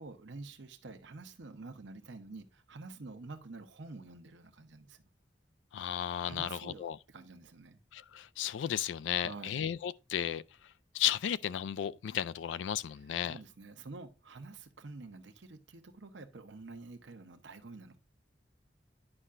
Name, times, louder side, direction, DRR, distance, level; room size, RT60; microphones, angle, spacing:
voice 1, 0.0-5.0 6.2-7.8 9.2-9.6 13.2-18.0, right 3 dB, 85° right, 0.8 m, -48 dB
voice 2, 5.7-7.0 7.9-13.4, left 10 dB, 85° left, 0.3 m, -34 dB
9.8 x 5.5 x 2.4 m
head